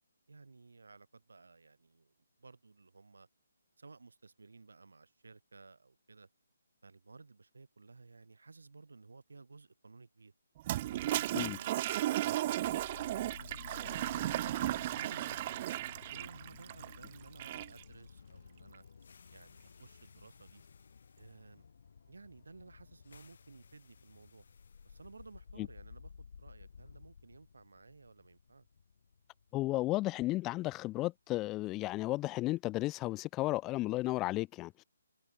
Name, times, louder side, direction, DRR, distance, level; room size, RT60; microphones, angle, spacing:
voice 1, 0.3-3.3 3.8-6.3 6.8-10.3 10.9-14.5 14.9-15.6 16.1-18.8 19.3-20.6 21.2-21.6 22.0-24.4 24.8-28.7, right 4 dB, 75° right, 5.0 m, -56 dB
Toilet flush, 10.6-17.8, right 14 dB, 30° right, 0.3 m, -35 dB
sound 1, 12.5-30.6, left 6 dB, 60° left, 2.5 m, -55 dB
voice 2, 29.5-34.8, left 18 dB, 20° left, 0.9 m, -34 dB
figure-of-eight pair, 150°, 0 cm